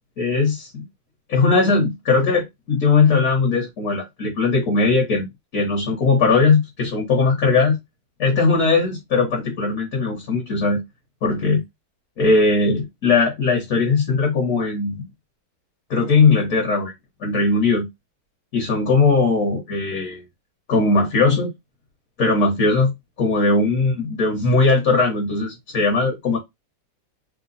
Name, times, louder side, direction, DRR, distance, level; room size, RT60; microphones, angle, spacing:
voice 1, 0.2-0.8 1.3-5.3 5.5-7.8 8.2-10.8 11.2-11.6 12.2-15.0 15.9-16.9 17.2-17.9 18.5-20.2 20.7-21.5 22.2-22.9 23.2-26.4, left 3 dB, 55° left, 1.2 m, -19 dB
3.2 x 2.0 x 3.8 m
omnidirectional pair, 1.9 m